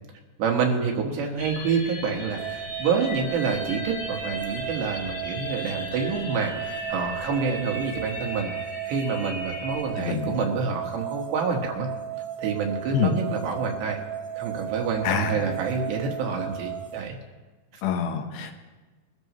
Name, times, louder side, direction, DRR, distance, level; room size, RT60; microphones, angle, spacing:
voice 1, 0.4-8.5 8.9-11.9 12.4-14.0 14.4-17.2 17.7-17.8, right 5 dB, 85° right, 1 dB, 3.8 m, -27 dB
sound 1, 1.4-9.8, left 1 dB, 55° left, 1.8 m, -37 dB
sound 2, 2.4-17.0, right 9 dB, 40° right, 1.8 m, -35 dB
voice 2, 10.0-10.4 12.9-13.1 15.0-15.5 17.8-18.5, left 7 dB, 80° left, 4 dB, 3.2 m, -26 dB
22.5 x 13.5 x 3.1 m, 1.2 s
omnidirectional pair, 4.9 m